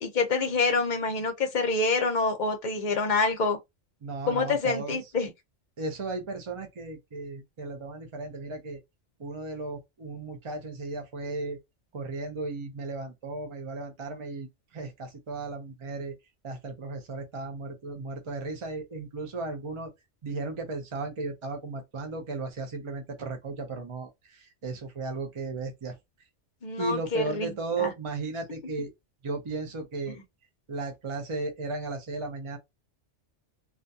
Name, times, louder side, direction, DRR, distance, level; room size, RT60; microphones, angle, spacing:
voice 1, 0.0-3.6 4.3-5.3 26.6-27.5 27.8-27.9, left 3 dB, 50° left, 0.7 m, -26 dB
voice 2, 4.0-5.0 5.8-8.8 9.2-11.6 11.9-16.1 16.4-19.9 20.2-26.0 26.8-28.9 29.2-30.2 30.7-32.6, right 3 dB, 40° right, 0.4 m, -35 dB
2.4 x 2.2 x 2.6 m
omnidirectional pair, 1.2 m